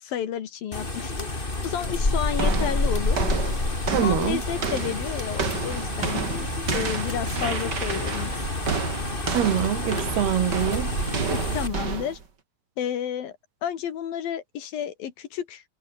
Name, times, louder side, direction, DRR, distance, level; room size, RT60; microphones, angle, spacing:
voice 1, 0.0-3.2 4.0-8.4 11.3-12.2 12.8-13.3 13.6-15.6, left 9 dB, 65° left, 3.6 m, -31 dB
sound 1, 0.7-11.7, left 2 dB, 15° left, 2.8 m, -28 dB
sound 2, 2.3-12.2, right 5 dB, 30° right, 2.4 m, -31 dB
voice 2, 3.9-4.4 9.3-10.9, right 10 dB, 75° right, 4.3 m, -24 dB
omnidirectional pair, 4.6 m